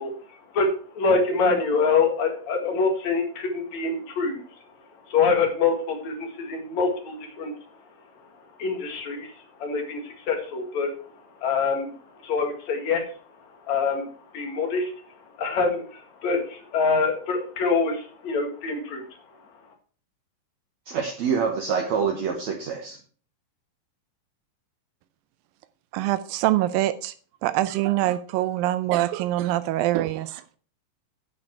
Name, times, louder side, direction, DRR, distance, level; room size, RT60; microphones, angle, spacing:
voice 1, 0.0-7.8 8.2-19.5, left 4 dB, 55° left, 4 dB, 3.0 m, -26 dB
voice 2, 20.9-23.0, right 6 dB, 60° right, 1 dB, 2.3 m, -26 dB
voice 3, 25.9-27.1 27.4-30.6, right 15 dB, 90° right, 13 dB, 2.3 m, -24 dB
9.7 x 8.6 x 4.5 m, 0.41 s
omnidirectional pair, 4.0 m